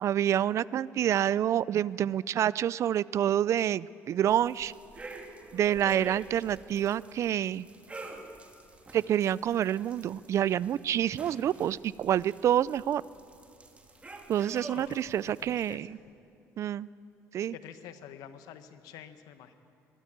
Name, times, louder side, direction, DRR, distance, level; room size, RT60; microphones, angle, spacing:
voice 1, 0.0-4.7 5.5-7.7 8.9-13.0 14.3-15.9 16.6-16.9 17.3-17.5, right 10 dB, 50° right, 20 dB, 0.4 m, -27 dB
sound 1, 4.3-15.7, right 2 dB, 20° right, 2.1 m, -48 dB
voice 2, 14.7-15.0 15.2-15.9 17.5-19.5, left 9 dB, 80° left, 10 dB, 1.2 m, -48 dB
21.5 x 13.5 x 8.9 m, 2.6 s
cardioid pair, 110°, 6 cm